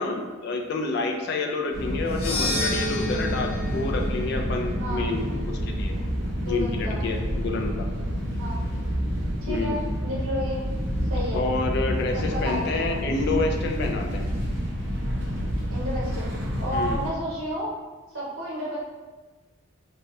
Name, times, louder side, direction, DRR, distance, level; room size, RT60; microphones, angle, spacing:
voice 1, 0.0-5.9 6.5-7.9 9.5-9.8 11.3-14.3 16.7-17.0, left 3 dB, 50° left, 2 dB, 0.3 m, -28 dB
sound 1, 1.7-17.1, equal, 55° right, 0.7 m, -29 dB
sound 2, 2.1-6.4, left 1 dB, 80° left, 0.6 m, -32 dB
voice 2, 6.4-7.0 8.4-8.6 9.4-10.6 11.0-11.4 12.1-13.0 15.7-17.7 18.1-18.8, equal, 90° right, -7 dB, 1.2 m, -32 dB
2.7 x 2.2 x 3.1 m, 1.3 s
head